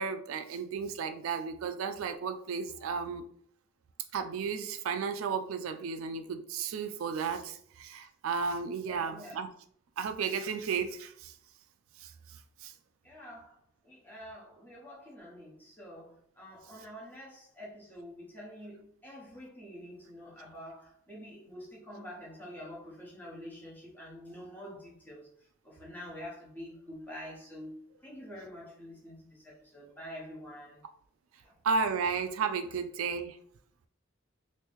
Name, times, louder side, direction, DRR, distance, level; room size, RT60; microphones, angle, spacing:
voice 1, 0.0-3.2 4.1-9.5 10.0-11.3 12.0-12.1 12.6-12.7 31.6-33.4, right 5 dB, 85° right, 0.4 m, -33 dB
voice 2, 8.8-9.4 13.0-13.6 13.8-30.8 31.4-31.6, equal, 10° left, 1.0 m, -47 dB
3.0 x 2.6 x 3.5 m
head